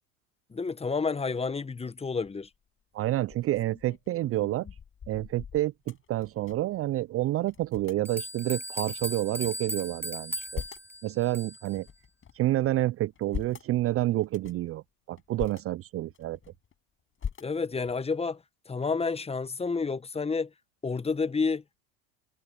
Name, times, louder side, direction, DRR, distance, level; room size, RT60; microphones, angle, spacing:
voice 1, 0.5-2.5 17.4-18.4 18.7-20.5 20.8-21.8, left 4 dB, 15° left, 1.2 m, -30 dB
sound 1, 2.2-2.6 3.1-6.8 7.1-7.2 7.4-8.0 8.7-9.8 10.2-11.0 11.5-12.5 13.0-13.7 14.2-14.7 15.2-15.6 16.1-16.7 17.2-17.9, left 7 dB, 30° left, 6.7 m, -42 dB
voice 2, 2.9-4.7 5.1-10.6 11.0-11.9 12.3-14.8 15.1-16.4, right 15 dB, 35° right, 0.6 m, -29 dB
sound 2, 7.6-7.7 8.1-11.8, right 1 dB, 5° right, 1.6 m, -37 dB
hypercardioid pair, 85°, 41 cm